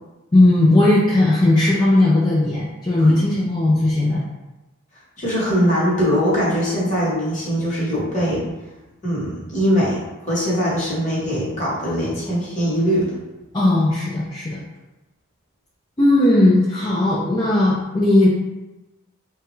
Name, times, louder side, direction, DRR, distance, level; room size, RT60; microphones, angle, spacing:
voice 1, 0.3-4.2 13.5-14.6 16.0-18.3, left 1 dB, 20° left, -7 dB, 0.4 m, -17 dB
voice 2, 5.2-8.4 9.0-10.0 10.2-13.1, equal, 35° left, -7 dB, 1.1 m, -21 dB
3.4 x 2.2 x 3.0 m, 1.1 s
head